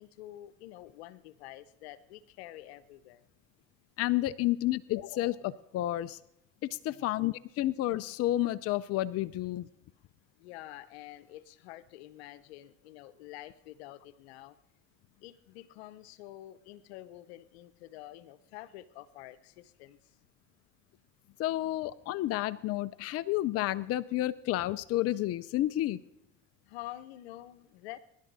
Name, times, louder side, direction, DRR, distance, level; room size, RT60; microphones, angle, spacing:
voice 1, 0.0-3.2 6.9-7.1 10.4-14.6 15.2-20.0 26.7-28.0, left 14 dB, 80° left, 15 dB, 0.9 m, -48 dB
voice 2, 4.0-6.2 6.6-9.7 21.4-26.0, left 15 dB, 50° left, 14 dB, 0.6 m, -30 dB
22.0 x 11.5 x 4.1 m, 0.84 s
supercardioid pair, 85°, 31 cm